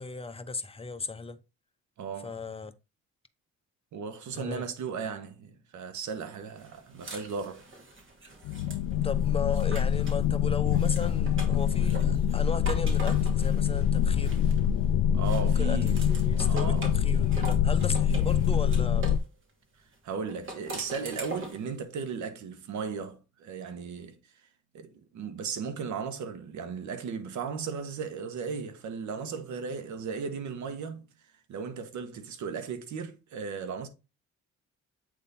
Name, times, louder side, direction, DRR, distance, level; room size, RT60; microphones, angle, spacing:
voice 1, 0.0-1.4 2.2-2.7 4.3-4.6 9.0-14.4 15.6-19.1, left 4 dB, 20° left, 0.8 m, -36 dB
voice 2, 2.0-2.3 3.9-7.7 15.1-16.1 16.4-16.9 20.0-24.2 24.7-31.1 31.5-33.9, right 5 dB, 70° right, 1.3 m, -36 dB
sound 1, 6.6-10.2 10.7-14.8 15.2-19.3 20.3-21.7, right 2 dB, 40° right, 2.7 m, -43 dB
sound 2, 8.5-19.2, left 9 dB, 85° left, 0.5 m, -25 dB
8.4 x 3.6 x 4.2 m
cardioid pair, 90°, 30 cm